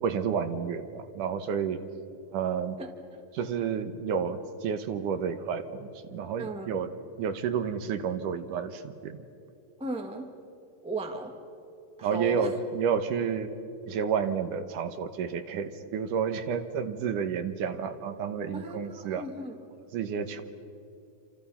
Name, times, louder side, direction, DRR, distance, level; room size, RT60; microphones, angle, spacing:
voice 1, 0.0-1.8 2.3-2.8 3.3-6.9 7.2-9.2 12.0-13.5 13.9-19.3 19.9-20.4, right 7 dB, 70° right, 9 dB, 2.5 m, -30 dB
voice 2, 6.4-6.7 9.8-10.3 10.8-11.3 12.0-12.5 18.5-19.6, right 2 dB, 10° right, 3 dB, 0.3 m, -35 dB
28.5 x 27.5 x 5.7 m, 2.7 s
omnidirectional pair, 4.2 m